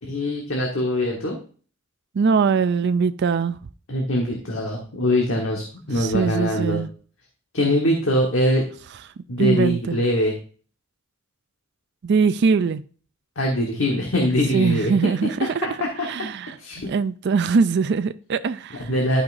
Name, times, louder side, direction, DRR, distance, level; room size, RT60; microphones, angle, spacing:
voice 1, 0.0-1.4 3.9-6.8 7.5-8.7 9.3-10.4 13.3-15.1 15.6-15.7 16.0-16.1 16.6-16.9 18.7-19.2, left 1 dB, 65° left, 1.4 m, -23 dB
voice 2, 2.1-3.6 6.0-6.9 9.4-10.0 12.0-12.8 14.5-15.7 16.1-16.5 16.9-18.9, right 5 dB, 55° right, 0.4 m, -21 dB
11.5 x 5.6 x 2.6 m
head